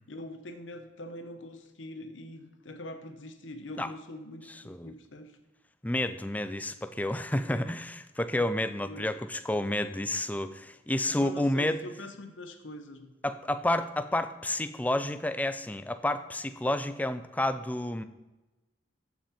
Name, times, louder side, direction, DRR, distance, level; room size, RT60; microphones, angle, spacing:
voice 1, 0.1-5.3 8.9-9.1 11.1-13.1, left 1 dB, 85° left, 7 dB, 1.0 m, -43 dB
voice 2, 4.5-4.9 5.8-11.8 13.2-18.0, left 1 dB, 10° left, 10 dB, 0.4 m, -30 dB
14.0 x 6.1 x 4.3 m, 1.1 s
head